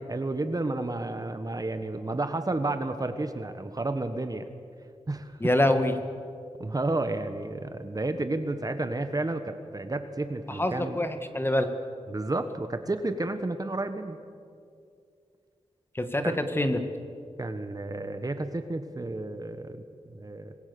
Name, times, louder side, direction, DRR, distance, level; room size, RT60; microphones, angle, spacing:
voice 1, 0.1-4.5 5.1-5.5 6.6-11.1 12.1-14.2 16.2-16.4 17.4-20.5, right 2 dB, 30° right, 9 dB, 1.4 m, -31 dB
voice 2, 5.4-5.9 10.6-11.1 11.3-11.7 15.9-16.8, left 1 dB, 20° left, 7 dB, 1.8 m, -25 dB
26.0 x 21.0 x 7.0 m, 2.4 s
wide cardioid pair, 90°, 12 cm